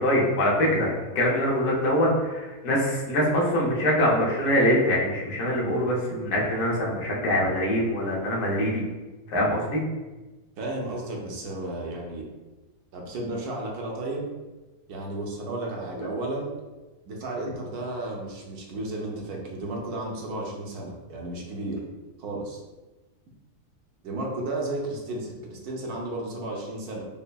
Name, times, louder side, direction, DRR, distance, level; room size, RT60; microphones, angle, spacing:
voice 1, 0.0-8.8 9.3-9.8 15.9-16.1, equal, 75° left, -4 dB, 1.3 m, -24 dB
voice 2, 10.6-12.2 12.9-14.3 14.9-16.5 17.1-21.8 22.2-22.6 24.0-27.0, right 2 dB, 75° right, -1 dB, 1.2 m, -33 dB
5.3 x 2.1 x 2.3 m, 1.2 s
omnidirectional pair, 1.7 m